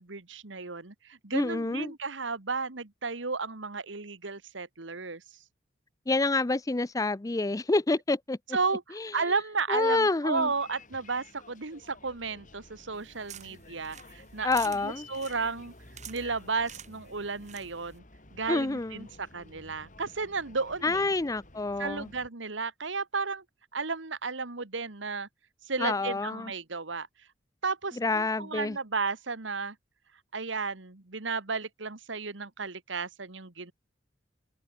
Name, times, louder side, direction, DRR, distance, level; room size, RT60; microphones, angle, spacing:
voice 1, 0.0-5.2 8.5-15.7 16.1-18.0 18.3-21.1 21.8-23.4 23.7-25.3 25.6-27.1 27.6-29.8 30.3-33.7, right 4 dB, 75° right, 1.8 m, -33 dB
voice 2, 1.3-1.9 6.1-8.4 9.0-9.1 9.7-10.5 14.4-15.1 18.5-19.1 20.8-22.1 25.8-26.5 28.0-28.8, left 3 dB, 20° left, 0.5 m, -28 dB
Bus, 10.3-22.3, left 2 dB, 45° left, 5.0 m, -53 dB
sound 1, 12.9-18.0, right 10 dB, 40° right, 2.5 m, -49 dB
head